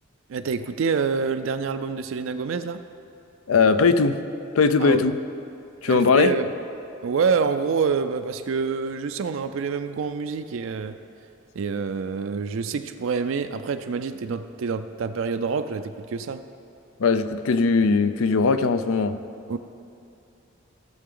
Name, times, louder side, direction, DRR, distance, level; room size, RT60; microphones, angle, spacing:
voice 1, 0.3-2.8 4.8-5.1 5.9-6.5 7.0-11.0 11.5-16.4 19.5-19.6, right 5 dB, 70° right, 0.4 m, -27 dB
voice 2, 3.5-4.2 4.6-5.1 5.8-6.3 17.0-19.2, left 4 dB, 85° left, 0.5 m, -19 dB
17.0 x 6.9 x 3.8 m
head